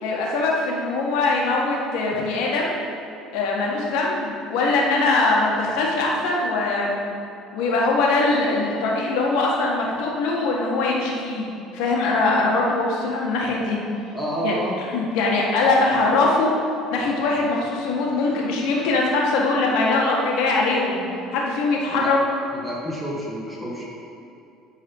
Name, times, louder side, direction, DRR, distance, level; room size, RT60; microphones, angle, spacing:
voice 1, 0.0-2.8 3.3-7.0 7.5-11.4 11.7-13.8 14.4-14.5 14.9-16.5 16.9-21.0 21.3-22.2, left 3 dB, 80° left, -2 dB, 1.7 m, -22 dB
voice 2, 14.1-14.8 21.9-22.1 22.5-23.9, right 1 dB, ahead, -5 dB, 1.8 m, -29 dB
11.0 x 4.1 x 5.5 m, 2.7 s
cardioid pair, 115°, 0 cm